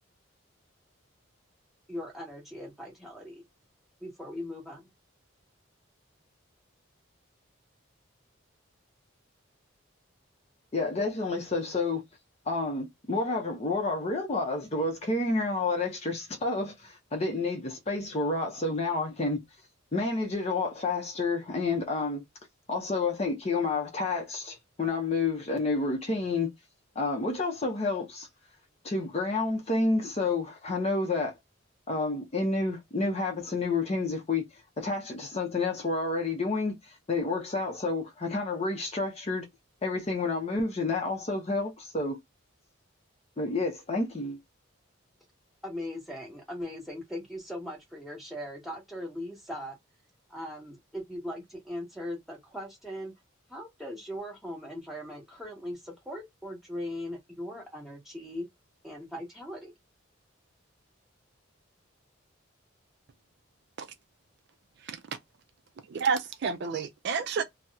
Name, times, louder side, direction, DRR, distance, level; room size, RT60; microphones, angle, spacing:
voice 1, 1.9-3.4 4.0-4.9 45.6-49.8 50.3-53.1 53.5-58.5 58.8-59.7, left 1 dB, ahead, 1.1 m, -39 dB
voice 2, 10.7-12.0 12.5-19.4 19.9-22.2 22.7-26.5 27.0-28.3 28.8-31.3 31.9-34.4 34.8-36.8 37.1-39.5 39.8-42.2 43.4-44.4, left 3 dB, 30° left, 0.6 m, -29 dB
voice 3, 65.9-67.4, right 5 dB, 55° right, 0.3 m, -29 dB
2.8 x 2.0 x 3.4 m
head